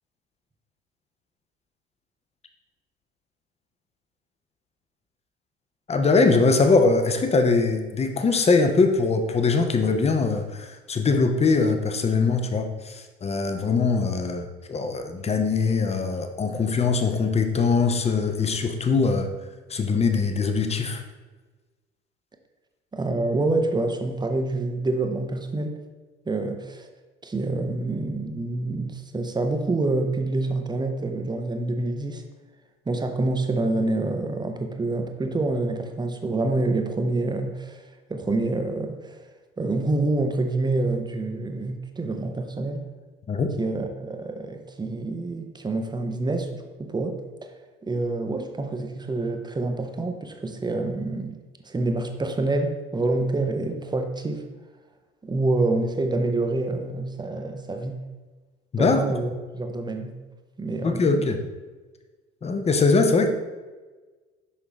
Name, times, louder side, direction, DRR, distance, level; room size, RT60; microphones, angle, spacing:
voice 1, 5.9-19.3 19.7-21.0 43.3-43.5 58.7-59.0 60.8-61.4 62.4-63.3, left 4 dB, 20° left, 0.7 m, -22 dB
voice 2, 22.9-25.8 26.3-26.9 27.2-32.2 32.9-37.8 38.1-39.3 39.6-42.9 43.6-47.2 47.8-54.5 55.2-58.0 58.7-60.2 60.6-61.4, right 2 dB, 15° right, 0.7 m, -27 dB
5.8 x 5.7 x 3.1 m
figure-of-eight pair, 55°, 31 cm